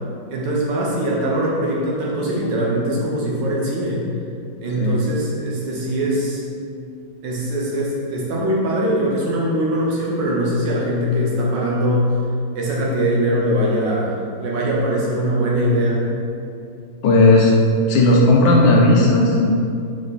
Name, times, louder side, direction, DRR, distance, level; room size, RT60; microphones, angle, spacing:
voice 1, 0.3-4.0 4.6-6.4 7.2-12.1 12.5-16.0, equal, 65° right, -4 dB, 1.5 m, -21 dB
voice 2, 2.2-2.5 4.8-5.0 17.0-17.5 17.9-19.5, left 2 dB, 70° left, -2 dB, 1.1 m, -14 dB
4.9 x 4.9 x 4.0 m, 2.5 s
omnidirectional pair, 2.2 m